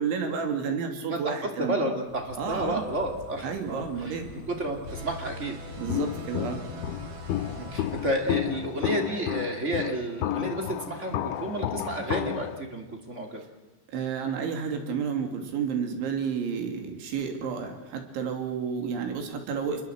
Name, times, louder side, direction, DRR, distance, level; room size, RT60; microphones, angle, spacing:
voice 1, 0.0-1.9 2.4-2.8 3.4-4.3 5.8-6.7 13.9-19.8, right 6 dB, 75° right, 4 dB, 5.1 m, -31 dB
voice 2, 1.1-4.2 4.5-5.5 7.6-13.4, right 1 dB, 25° right, 3 dB, 1.9 m, -31 dB
Insect, 2.1-8.1, left 4 dB, 60° left, 5.3 m, -45 dB
sound 1, 4.9-9.3, equal, 45° right, 3.2 m, -43 dB
Walk footsteps, 5.9-12.6, left 12 dB, 85° left, 3.5 m, -31 dB
27.5 x 22.5 x 7.9 m, 1.1 s
omnidirectional pair, 5.5 m